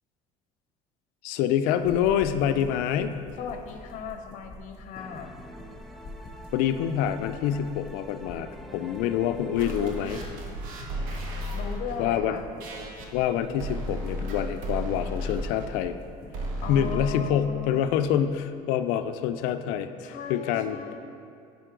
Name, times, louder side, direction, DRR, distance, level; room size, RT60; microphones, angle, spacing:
voice 1, 1.2-3.2 6.5-10.2 12.0-12.4 13.1-15.9 16.7-20.8, left 9 dB, 85° left, 10 dB, 0.4 m, -26 dB
sound 1, 1.8-17.1, left 2 dB, 30° left, 1.9 m, -46 dB
voice 2, 3.4-5.3 11.5-12.5 16.6-18.2 20.0-21.0, left 6 dB, 60° left, 5 dB, 0.7 m, -38 dB
sound 2, 4.9-10.1, equal, ahead, 0.4 m, -47 dB
sound 3, 9.6-11.9 12.6-13.0 13.6-15.7 16.3-17.0, equal, 75° right, 1.1 m, -33 dB
9.2 x 5.2 x 3.8 m, 2.4 s
cardioid pair, 135°, 14 cm